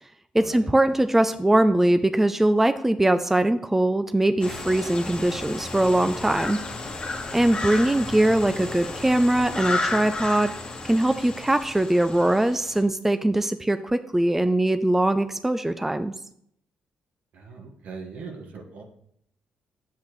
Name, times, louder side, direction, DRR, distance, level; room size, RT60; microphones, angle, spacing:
voice 1, 0.3-6.6 7.3-10.5 10.8-16.1, right 1 dB, 10° right, 10 dB, 0.4 m, -21 dB
sound 1, 4.4-12.8, left 3 dB, 35° left, 1.3 m, -33 dB
voice 2, 17.3-18.8, right 4 dB, 70° right, 2 dB, 1.5 m, -40 dB
8.5 x 7.4 x 3.1 m, 0.72 s
supercardioid pair, 65°, 3 cm